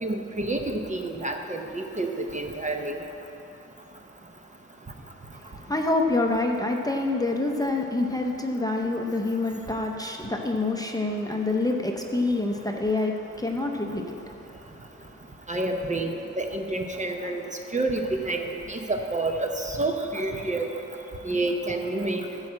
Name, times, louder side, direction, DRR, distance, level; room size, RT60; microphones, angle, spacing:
voice 1, 0.0-2.9 15.5-17.4 17.7-20.7 21.2-22.3, right 2 dB, 25° right, 3 dB, 0.7 m, -28 dB
voice 2, 5.3-14.5, left 2 dB, 10° left, 1 dB, 0.7 m, -27 dB
13.0 x 4.9 x 7.4 m, 2.9 s
wide cardioid pair, 150°, 29 cm